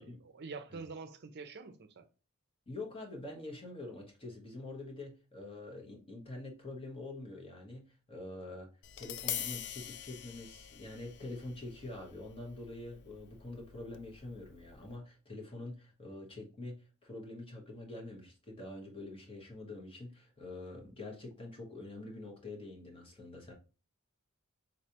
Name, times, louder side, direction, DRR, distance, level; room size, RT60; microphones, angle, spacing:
voice 1, 0.0-2.1, right 4 dB, 50° right, 0.5 m, -46 dB
voice 2, 2.7-8.7 9.0-23.5, left 2 dB, 25° left, 1.2 m, -45 dB
Tap, 8.8-15.0, left 11 dB, 55° left, 0.3 m, -45 dB
4.0 x 3.2 x 2.8 m
head